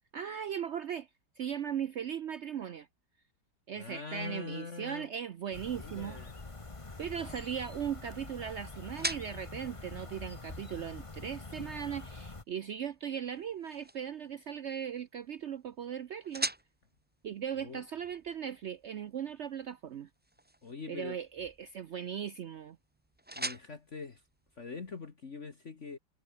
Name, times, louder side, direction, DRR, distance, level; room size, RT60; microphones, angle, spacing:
voice 1, 0.1-1.1 1.4-2.9 3.7-6.2 7.0-16.5 17.2-20.1 20.9-22.8, right 8 dB, 85° right, 0.6 m, -38 dB
voice 2, 3.8-5.1 5.7-6.4 17.6-17.8 20.6-21.2 23.4-24.2 24.6-26.0, left 4 dB, 40° left, 1.9 m, -43 dB
sound 1, 5.5-12.4, left 3 dB, 20° left, 1.4 m, -45 dB
sound 2, 6.3-25.1, right 1 dB, 10° right, 0.5 m, -46 dB
omnidirectional pair, 2.0 m